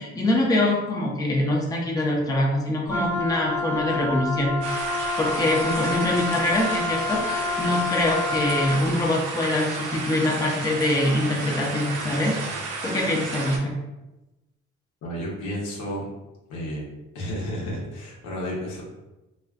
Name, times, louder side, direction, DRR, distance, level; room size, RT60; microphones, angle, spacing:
voice 1, 0.0-4.9 5.2-12.4 12.8-13.7, left 1 dB, 10° left, -2 dB, 0.5 m, -24 dB
Wind instrument woodwind instrument, 2.9-8.9, left 3 dB, 5° right, 0.9 m, -28 dB
sound 1, 4.6-13.6, right 3 dB, 75° right, 0.6 m, -32 dB
voice 2, 15.0-16.0 16.5-16.8 17.1-18.8, equal, 85° left, -3 dB, 0.8 m, -32 dB
2.4 x 2.3 x 2.3 m, 1.0 s
cardioid pair, 90°, 30 cm